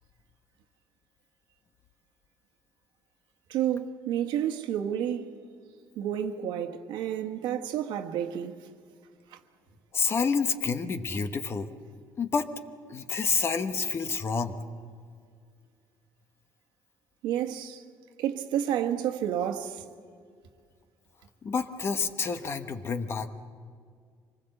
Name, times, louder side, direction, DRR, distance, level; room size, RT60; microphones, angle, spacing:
voice 1, 3.5-5.4 6.0-8.5 17.2-17.8 18.2-19.8, right 10 dB, 85° right, 1.5 m, -30 dB
voice 2, 9.9-11.7 12.2-12.5 12.9-14.6 21.4-23.3, left 5 dB, 35° left, 1.1 m, -28 dB
25.5 x 20.0 x 7.9 m
cardioid pair, 140°, 7 cm